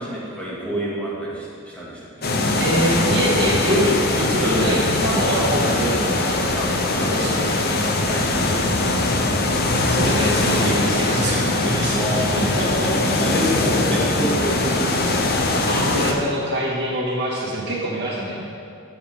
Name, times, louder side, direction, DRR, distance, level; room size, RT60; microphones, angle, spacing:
voice 1, 0.0-2.0 4.4-4.8 6.5-7.4 8.0-8.7 11.9-12.4 13.2-15.2, equal, 5° left, -7 dB, 2.1 m, -28 dB
sound 1, 2.2-16.1, left 2 dB, 50° left, 0.9 m, -21 dB
voice 2, 2.6-6.2 6.9-7.6 9.9-13.2 13.6-13.7 15.7-18.4, right 1 dB, 55° right, -5 dB, 2.0 m, -24 dB
11.5 x 7.5 x 3.7 m, 2.3 s
head